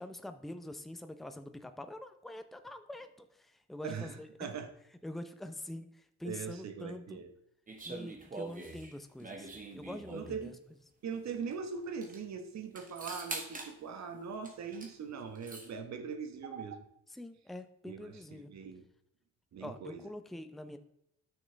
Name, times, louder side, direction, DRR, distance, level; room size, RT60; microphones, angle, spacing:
voice 1, 0.0-4.5 5.0-7.2 7.8-10.5 17.1-18.5 19.6-20.8, left 1 dB, ahead, 9 dB, 0.6 m, -45 dB
voice 2, 3.8-4.7 6.2-7.3 10.1-10.5 11.0-16.8 17.8-18.8 19.5-20.0, right 6 dB, 65° right, 7 dB, 1.3 m, -41 dB
sound 1, 7.7-10.4 11.5-11.6 11.8-12.2 12.8-13.7 14.4-14.9 15.2-15.7, right 3 dB, 25° right, 1.7 m, -44 dB
9.6 x 6.3 x 3.4 m, 0.77 s
cardioid pair, 90°, 30 cm